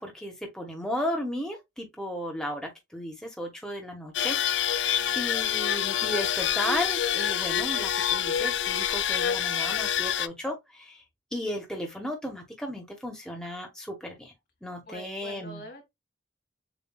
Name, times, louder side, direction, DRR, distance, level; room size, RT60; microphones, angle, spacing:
voice 1, 0.0-11.0 11.3-14.3 14.6-15.6, equal, 5° left, 1.1 m, -35 dB
sound 1, 4.1-10.3, left 10 dB, 85° left, 0.4 m, -27 dB
voice 2, 14.9-15.8, right 1 dB, 60° left, 1.8 m, -44 dB
7.2 x 2.6 x 2.3 m
head